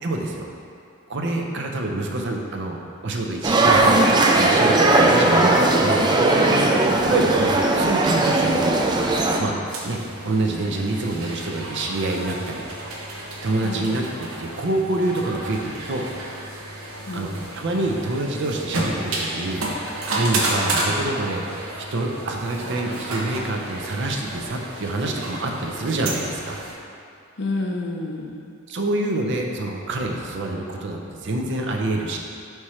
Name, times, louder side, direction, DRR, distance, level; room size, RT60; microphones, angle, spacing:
voice 1, 0.0-0.5 1.1-2.8 3.0-6.1 7.0-8.8 9.4-9.5 9.8-10.0 10.2-12.6 13.4-16.1 17.1-17.3 17.6-19.6 20.1-21.5 21.9-26.6 28.7-32.2, right 2 dB, 60° right, 1 dB, 0.6 m, -26 dB
sound 1, 3.4-9.4, right 2 dB, 20° right, 0.4 m, -18 dB
sound 2, 9.7-26.8, right 2 dB, 90° right, 0.9 m, -31 dB
voice 2, 17.1-17.4 27.4-28.4, left 2 dB, 60° left, 1 dB, 0.6 m, -29 dB
4.9 x 4.6 x 4.3 m, 2.5 s
head